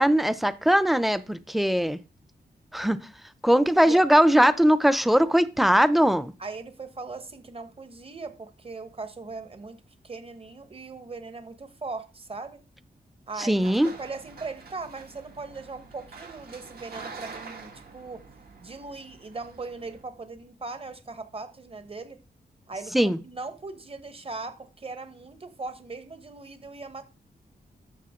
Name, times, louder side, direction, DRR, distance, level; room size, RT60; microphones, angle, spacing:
voice 1, 0.0-2.0 2.7-3.0 3.4-6.3 13.4-13.9 22.9-23.2, equal, ahead, 0.6 m, -20 dB
voice 2, 6.4-9.8 10.0-12.6 13.3-18.2 18.6-22.2 22.7-27.0, right 3 dB, 35° right, 1.3 m, -39 dB
sound 1, 13.5-20.0, right 4 dB, 65° right, 2.3 m, -46 dB
11.5 x 7.1 x 3.7 m
wide cardioid pair, 90°, 17 cm